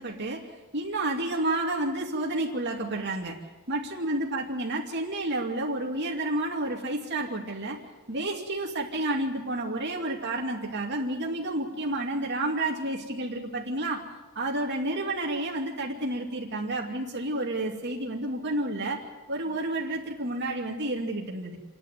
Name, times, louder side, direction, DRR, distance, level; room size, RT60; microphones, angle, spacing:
voice 1, 0.0-3.4 3.7-7.8 8.1-14.0 14.3-21.6, right 1 dB, 50° right, -1 dB, 2.6 m, -30 dB
29.0 x 11.0 x 9.6 m, 1.2 s
head